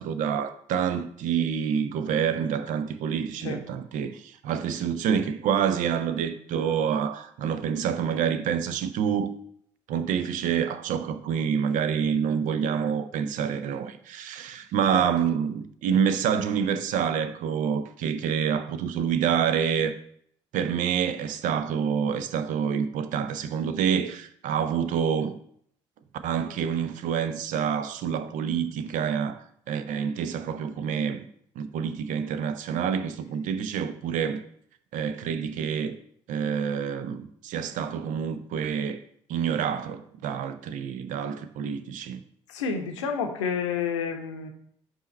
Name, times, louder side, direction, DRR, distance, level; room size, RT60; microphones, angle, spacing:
voice 1, 0.0-9.3 9.9-19.9 20.5-25.4 26.2-31.2 31.6-34.4 34.9-36.0 36.3-39.0 39.3-42.2, right 7 dB, 55° right, 0.6 m, -27 dB
voice 2, 42.5-44.5, left 6 dB, 75° left, 0.7 m, -30 dB
5.5 x 4.2 x 4.2 m
figure-of-eight pair, 45°, 16 cm